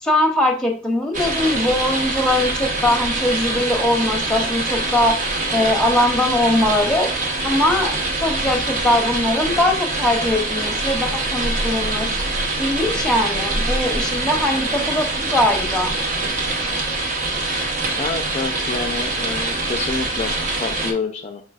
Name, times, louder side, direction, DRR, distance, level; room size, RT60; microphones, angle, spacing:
voice 1, 0.0-5.2 5.5-7.1 7.4-7.9 8.2-12.1 12.6-16.0, left 1 dB, 5° left, 2 dB, 0.8 m, -21 dB
sound 1, 1.1-20.9, right 2 dB, 40° right, 0.8 m, -24 dB
voice 2, 18.0-21.4, left 4 dB, 35° left, 4 dB, 0.3 m, -28 dB
4.5 x 3.8 x 2.3 m, 0.40 s
head